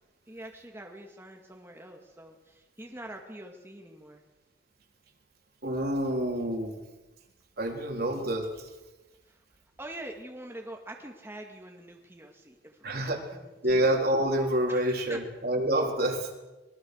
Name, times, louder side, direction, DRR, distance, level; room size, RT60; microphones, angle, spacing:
voice 1, 0.3-4.2 9.3-9.4 9.8-13.8 14.7-15.2, right 1 dB, 15° right, 1 dB, 2.1 m, -45 dB
voice 2, 5.6-6.8 7.6-8.7 12.8-13.2 13.6-16.3, right 1 dB, 55° right, 2 dB, 4.0 m, -27 dB
25.0 x 21.5 x 6.4 m, 1.1 s
head